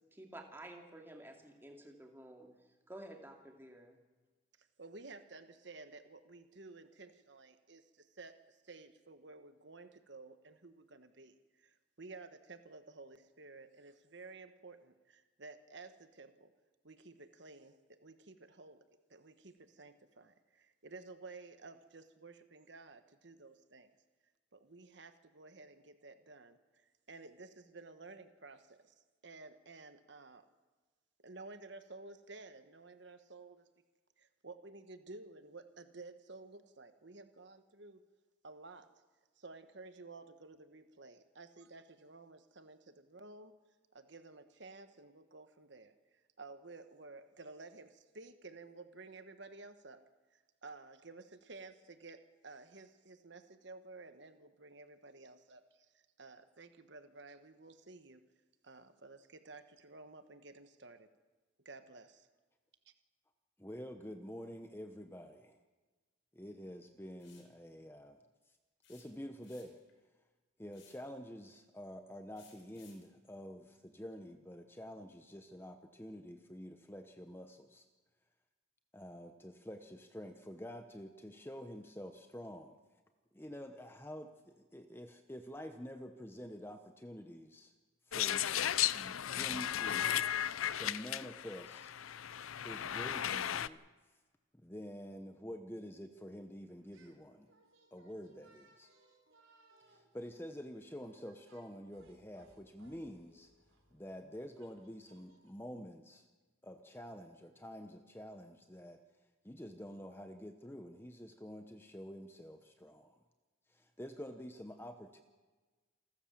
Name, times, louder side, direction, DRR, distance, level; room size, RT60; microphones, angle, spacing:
voice 1, 0.1-2.5 2.9-4.0, right 1 dB, 10° right, 2 dB, 2.4 m, -51 dB
voice 2, 4.6-16.5 16.8-18.8 19.1-23.9 24.5-28.9 29.2-30.5 31.2-33.7 34.2-38.0 38.4-39.0 39.4-43.5 43.9-50.0 50.3-58.2 58.6-61.1 61.6-62.3 62.8-62.9, right 3 dB, 60° right, 9 dB, 1.2 m, -53 dB
voice 3, 63.6-65.6 66.3-68.2 68.9-69.8 70.6-77.9 78.9-82.8 83.3-87.7 88.1-88.5 88.9-90.2 90.8-91.9 92.6-93.8 94.5-97.5 97.9-98.9 99.9-103.5 103.9-106.3 106.6-109.0 109.4-113.2 113.7-115.2, equal, 10° left, 7 dB, 0.9 m, -48 dB
sound 1, 67.2-67.5 68.8-69.9 70.7-71.1 72.4-73.1, left 7 dB, 70° left, 4.7 m, -63 dB
sound 2, 88.1-93.7, left 11 dB, 85° left, 0.5 m, -35 dB
sound 3, 96.8-97.2 97.5-105.5, right 2 dB, 85° right, 4.4 m, -68 dB
28.5 x 13.0 x 7.3 m, 1.3 s
head